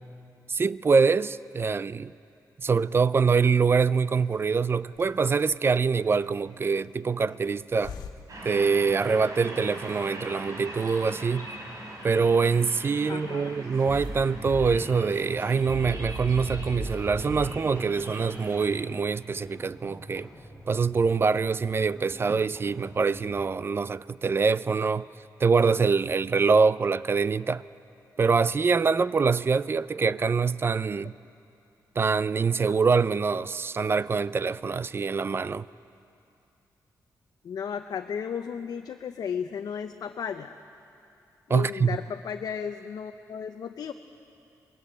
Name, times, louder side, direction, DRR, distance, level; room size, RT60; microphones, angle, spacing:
voice 1, 0.5-2.1 2.6-8.0 8.4-11.5 12.0-20.3 20.7-25.1 25.4-27.6 28.2-31.1 32.0-35.7 41.5-42.0, right 5 dB, 35° right, 0.4 m, -24 dB
Hiss, 3.9-9.4, left 6 dB, 85° left, 1.2 m, -49 dB
sound 1, 8.3-18.8, right 1 dB, 55° right, 4.4 m, -41 dB
voice 2, 13.0-13.5 37.4-40.6 41.5-43.9, left 7 dB, 65° left, 0.6 m, -34 dB
sound 2, 13.9-23.6, equal, 20° right, 3.5 m, -40 dB
20.5 x 15.0 x 8.9 m
cardioid pair, 100°, 7 cm